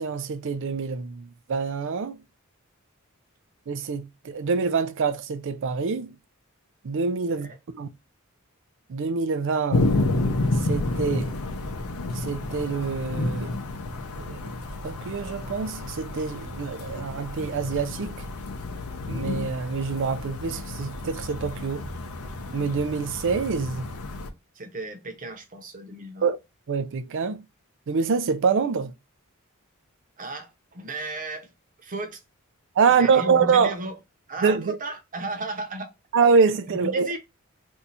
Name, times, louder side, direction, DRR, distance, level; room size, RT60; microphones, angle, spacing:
voice 1, 0.0-2.2 3.7-6.1 6.8-7.9 8.9-9.9 10.6-11.3 12.1-13.5 14.2-14.5 14.8-18.1 19.1-21.9 22.5-23.8 26.2-26.4 26.7-27.4 27.9-28.9 32.8-33.7 34.4-34.8 36.1-37.1, right 5 dB, 60° right, 0.4 m, -25 dB
sound 1, 9.7-24.3, left 2 dB, 85° left, 0.6 m, -30 dB
voice 2, 24.5-26.2 30.2-31.5 31.8-32.2 33.0-34.0 34.3-35.9 36.7-37.2, right 2 dB, 40° right, 0.8 m, -35 dB
2.7 x 2.3 x 4.1 m
head